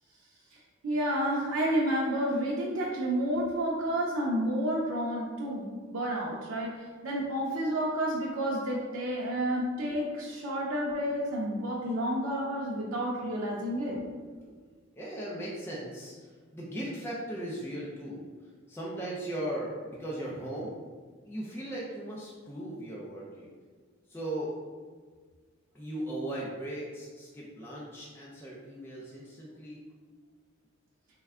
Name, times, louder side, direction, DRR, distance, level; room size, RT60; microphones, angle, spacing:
voice 1, 0.8-13.9, right 1 dB, 90° right, -4 dB, 0.5 m, -30 dB
voice 2, 13.9-14.6 14.9-18.2 18.7-20.7 21.3-23.5 24.1-24.5 25.7-29.8, right 1 dB, 10° left, -6 dB, 0.4 m, -38 dB
3.3 x 2.2 x 3.5 m, 1.5 s
head